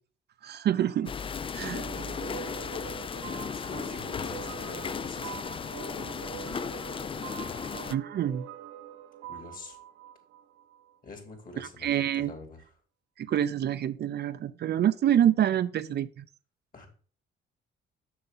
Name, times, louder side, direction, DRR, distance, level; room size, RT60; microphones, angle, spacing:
voice 1, 0.4-1.1 1.5-1.9 7.9-8.5 11.6-12.3 13.2-16.3, right 10 dB, 55° right, 13 dB, 0.5 m, -27 dB
sound 1, 1.1-8.0, left 6 dB, 25° left, 0.4 m, -36 dB
sound 2, 1.7-11.0, right 11 dB, 80° right, 0.9 m, -44 dB
voice 2, 3.3-5.8 6.2-6.7 7.3-7.6 9.3-9.8 11.0-12.7 16.7-16.9, left 3 dB, 45° left, 4 dB, 3.2 m, -46 dB
7.1 x 6.6 x 4.1 m, 0.41 s
cardioid pair, 90°, 20 cm